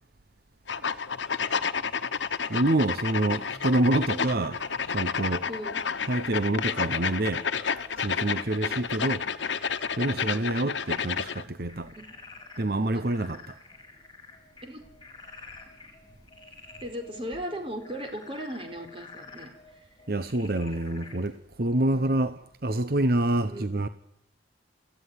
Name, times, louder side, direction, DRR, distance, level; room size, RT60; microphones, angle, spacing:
sound 1, 0.7-11.4, left 6 dB, 85° left, 1.1 m, -30 dB
voice 1, 2.5-4.6 4.8-5.5 6.1-7.4 8.0-9.2 10.0-11.9 12.6-13.6 20.1-23.9, right 1 dB, 55° right, 1.0 m, -27 dB
Frog, 2.7-21.4, left 3 dB, 25° left, 4.3 m, -50 dB
sound 2, 3.4-12.0, equal, 5° right, 6.6 m, -55 dB
voice 2, 5.5-5.8 8.5-8.8 10.2-10.6 11.9-12.2 12.9-13.0 14.6-14.8 16.8-19.5 19.8-19.9 21.9-22.2 23.4-23.8, equal, 30° right, 4.4 m, -38 dB
27.0 x 15.5 x 9.8 m
head